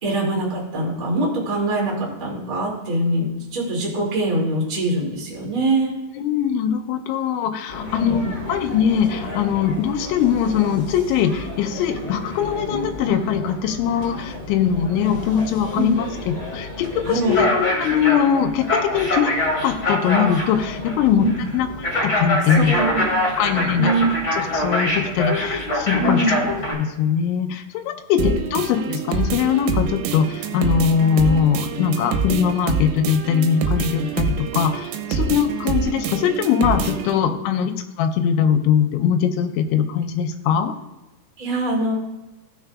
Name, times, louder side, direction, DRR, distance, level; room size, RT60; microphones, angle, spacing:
voice 1, 0.0-6.0 8.0-8.2 15.7-15.9 17.0-17.4 21.2-21.4 22.5-23.1 23.5-24.1 26.0-26.4 28.2-28.3 41.4-41.9, right 2 dB, 35° right, -4 dB, 0.8 m, -23 dB
voice 2, 6.2-16.1 16.5-19.3 19.6-21.3 21.5-21.7 22.0-22.7 23.4-23.9 24.3-26.2 26.8-37.7 38.0-40.7, left 8 dB, 85° left, 5 dB, 3.1 m, -21 dB
sound 1, 7.7-26.7, left 1 dB, 15° left, 2.9 m, -26 dB
sound 2, 28.2-37.2, right 5 dB, 90° right, 3.2 m, -26 dB
16.0 x 6.2 x 2.4 m, 1.0 s
omnidirectional pair, 5.4 m